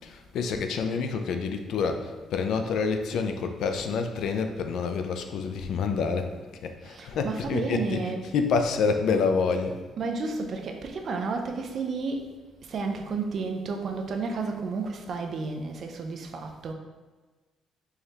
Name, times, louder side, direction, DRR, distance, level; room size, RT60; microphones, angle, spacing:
voice 1, 0.0-6.3 6.6-9.8, left 5 dB, 60° left, 6 dB, 0.3 m, -28 dB
voice 2, 6.9-8.3 10.0-12.3 12.7-16.7, right 4 dB, 40° right, 4 dB, 0.4 m, -32 dB
4.7 x 3.3 x 2.8 m, 1.3 s
cardioid pair, 175°, 0 cm